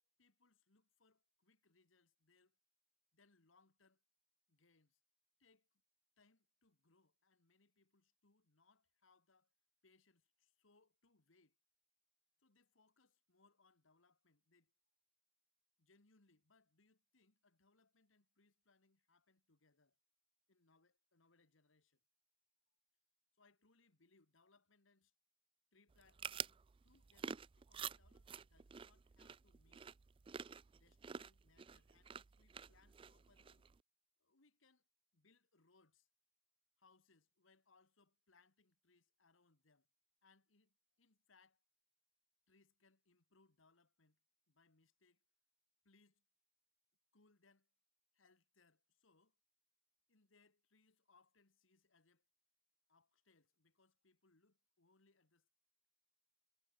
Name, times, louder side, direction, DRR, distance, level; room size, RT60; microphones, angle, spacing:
voice 1, 0.2-2.6 3.1-4.0 4.5-5.0 5.4-5.8 6.2-9.5 9.8-11.6 12.4-14.7 15.8-20.0 20.5-22.0 23.3-25.1 25.7-29.9 30.7-33.6 34.2-34.9 35.1-36.1 36.8-39.9 40.2-41.6 42.5-44.2 44.5-45.2 45.8-46.2 47.1-47.7 48.1-49.4 50.1-52.3 52.9-55.5, left 3 dB, 90° left, 1.9 m, -74 dB
sound 1, 25.9-33.8, right 7 dB, 25° right, 0.3 m, -50 dB
head